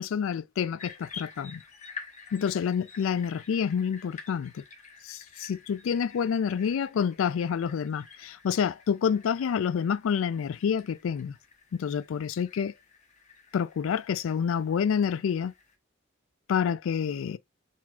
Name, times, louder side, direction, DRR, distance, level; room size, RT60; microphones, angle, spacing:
voice 1, 0.0-1.6 2.3-4.6 5.0-11.3 11.7-12.7 13.5-15.5 16.5-17.4, left 7 dB, 75° left, 0.3 m, -28 dB
sound 1, 0.8-15.7, left 5 dB, 35° left, 1.0 m, -50 dB
4.7 x 3.8 x 2.3 m
head